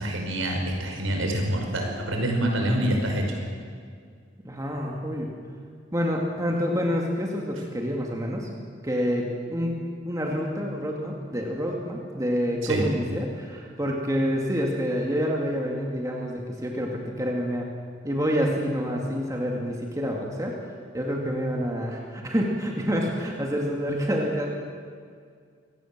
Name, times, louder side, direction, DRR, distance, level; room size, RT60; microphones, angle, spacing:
voice 1, 0.0-3.4 12.6-12.8, right 1 dB, 85° right, 2 dB, 5.5 m, -26 dB
voice 2, 4.4-5.3 5.9-8.5 8.8-9.8 10.0-17.7 18.0-20.6 20.9-24.5, equal, 15° right, -1 dB, 2.3 m, -27 dB
24.5 x 18.5 x 7.5 m, 2.1 s
head